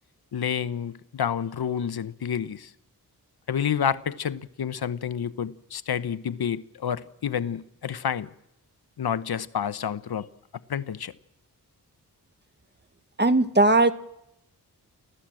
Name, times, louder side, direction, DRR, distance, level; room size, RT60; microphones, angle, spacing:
voice 1, 0.3-2.7 3.5-8.3 9.0-10.3 10.7-11.1, left 8 dB, 70° left, 1.0 m, -29 dB
voice 2, 13.2-13.9, right 2 dB, 25° right, 1.5 m, -18 dB
29.0 x 16.0 x 7.7 m
cardioid pair, 50°, 39 cm